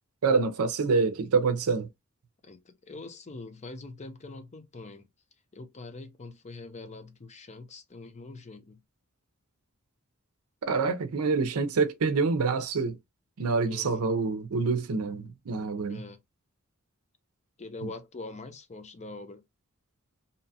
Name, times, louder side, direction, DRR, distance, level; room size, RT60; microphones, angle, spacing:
voice 1, 0.2-1.9 10.6-13.0 13.4-16.0, right 4 dB, 85° right, 0.5 m, -26 dB
voice 2, 2.4-5.1 5.5-8.8 13.7-14.1 15.9-16.2 17.6-19.4, left 3 dB, 30° left, 0.5 m, -43 dB
2.8 x 2.2 x 2.7 m
head